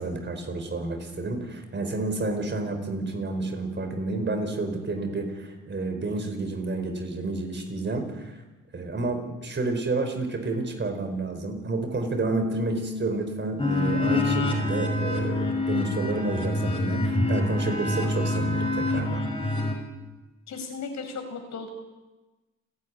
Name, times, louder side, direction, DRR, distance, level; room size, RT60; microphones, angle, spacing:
voice 1, 0.0-8.4 8.7-19.2, right 3 dB, 40° right, 6 dB, 4.8 m, -30 dB
Bass guitar, 12.2-18.5, left 2 dB, 5° right, 1.6 m, -40 dB
sound 1, 13.6-19.7, left 2 dB, 15° left, 6.0 m, -26 dB
voice 2, 20.5-21.7, left 4 dB, 65° left, 5 dB, 5.2 m, -36 dB
30.0 x 10.5 x 9.9 m, 1.1 s
cardioid pair, 90°, 30 cm